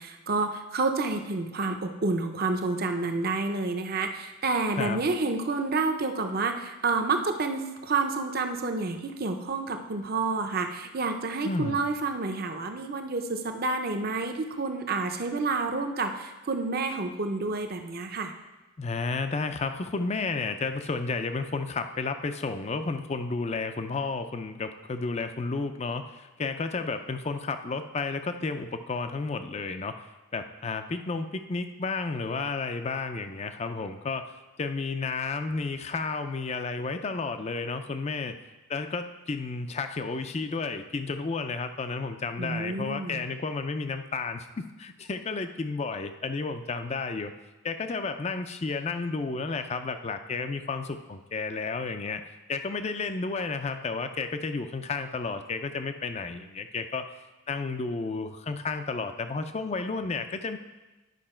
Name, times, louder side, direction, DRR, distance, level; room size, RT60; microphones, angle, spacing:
voice 1, 0.0-18.3 42.4-43.2, right 3 dB, 45° right, 6 dB, 0.7 m, -29 dB
voice 2, 11.4-11.8 18.8-29.9 30.3-34.3 34.6-38.4 38.7-47.3 47.6-52.2 52.5-57.1 57.5-60.6, left 4 dB, 30° left, 9 dB, 0.4 m, -32 dB
11.0 x 5.5 x 4.4 m, 1.1 s
head